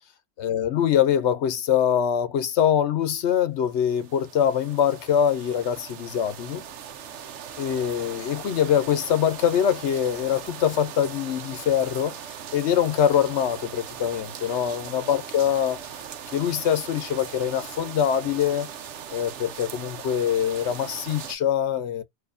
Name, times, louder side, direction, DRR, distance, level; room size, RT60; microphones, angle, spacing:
voice 1, 0.4-6.6 7.6-12.1 12.5-15.8 16.3-18.7 19.1-22.0, left 9 dB, 70° left, 0.9 m, -23 dB
sound 1, 3.6-21.4, right 8 dB, 75° right, 1.0 m, -39 dB
4.3 x 2.6 x 2.4 m
omnidirectional pair, 1.2 m